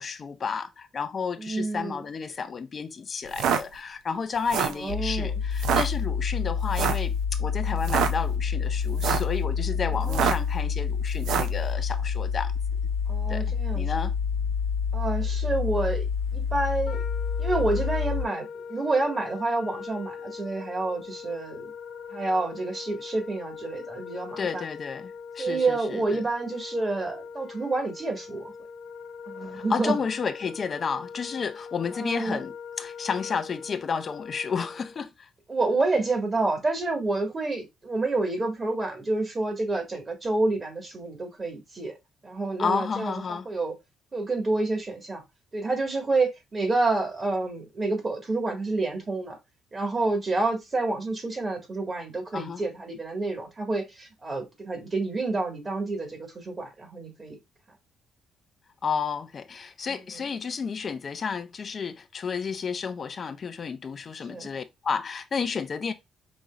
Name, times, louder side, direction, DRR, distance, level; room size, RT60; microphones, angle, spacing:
voice 1, 0.0-12.5 13.3-13.4 13.7-14.1 24.4-26.2 29.5-35.3 42.6-43.5 52.3-52.6 58.8-65.9, left 6 dB, 45° left, 0.4 m, -31 dB
voice 2, 1.4-2.0 4.8-5.4 10.0-10.3 13.1-13.8 14.9-17.0 17.4-21.7 22.1-24.6 25.4-28.5 29.3-30.0 32.0-32.4 35.5-41.9 42.2-43.7 44.1-45.2 45.5-49.4 49.7-57.4 59.9-60.2 64.3-64.5, right 2 dB, 30° right, 1.7 m, -28 dB
sound 1, 3.3-3.6 4.4-4.8 5.6-5.9 6.7-7.1 7.8-8.1 8.9-9.3 10.1-10.5 11.2-11.6, right 8 dB, 80° right, 0.5 m, -25 dB
sound 2, 4.9-18.3, left 6 dB, 90° left, 0.9 m, -28 dB
Wind instrument woodwind instrument, 16.8-35.0, left 6 dB, 65° left, 1.2 m, -41 dB
5.0 x 2.9 x 2.4 m
cardioid pair, 80°, 0 cm